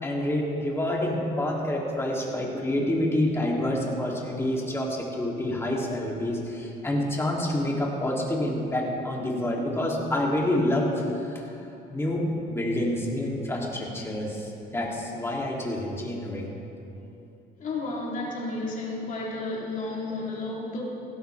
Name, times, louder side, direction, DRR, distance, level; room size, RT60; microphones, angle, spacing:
voice 1, 0.0-11.5 11.9-16.5, left 1 dB, 15° left, -3 dB, 3.1 m, -28 dB
voice 2, 17.6-20.8, left 2 dB, 50° left, -4 dB, 3.5 m, -32 dB
18.0 x 15.5 x 3.6 m, 2.7 s
cardioid pair, 110°, 17 cm